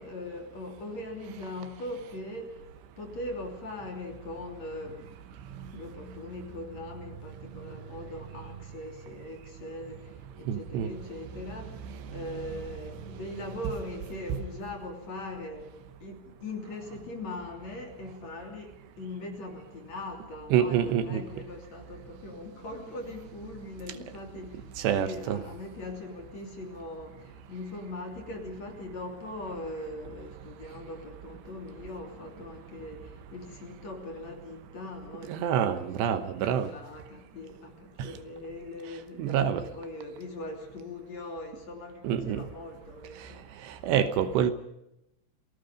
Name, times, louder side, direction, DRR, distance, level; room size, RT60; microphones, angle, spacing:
voice 1, 0.0-2.7 3.0-5.1 5.7-15.7 16.0-43.7, left 2 dB, 40° left, 3 dB, 3.8 m, -41 dB
voice 2, 10.5-10.9 20.5-21.2 24.8-25.4 35.3-36.7 38.0-38.2 39.2-39.6 42.0-42.4 43.7-44.5, right 9 dB, 75° right, 11 dB, 3.1 m, -27 dB
28.5 x 18.5 x 5.1 m, 0.85 s
omnidirectional pair, 5.2 m